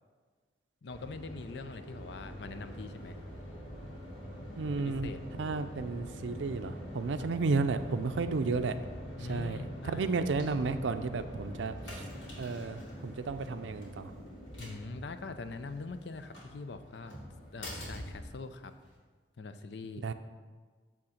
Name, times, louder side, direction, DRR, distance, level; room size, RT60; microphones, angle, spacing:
voice 1, 0.8-3.2 4.8-5.2 7.2-7.3 9.2-10.1 14.6-17.2 17.5-18.7 19.4-20.0, left 3 dB, 70° left, 10 dB, 0.5 m, -43 dB
sound 1, 0.9-19.0, equal, 90° left, 2.4 m, -45 dB
voice 2, 4.6-8.7 9.2-12.0 12.4-14.1 20.0-20.1, right 4 dB, 85° right, 9 dB, 0.5 m, -33 dB
8.7 x 3.6 x 6.4 m, 1.5 s
head